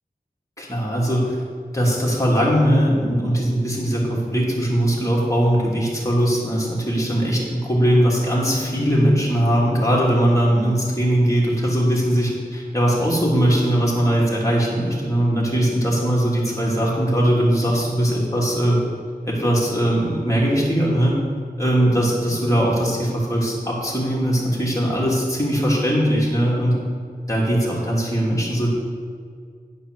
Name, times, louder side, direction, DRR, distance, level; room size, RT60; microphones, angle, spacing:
voice 1, 0.6-1.3 1.7-18.8 19.2-21.1 21.6-26.8 27.3-28.7, equal, 20° left, -5 dB, 3.0 m, -20 dB
11.0 x 5.6 x 6.3 m, 2.1 s
wide cardioid pair, 45°, 17 cm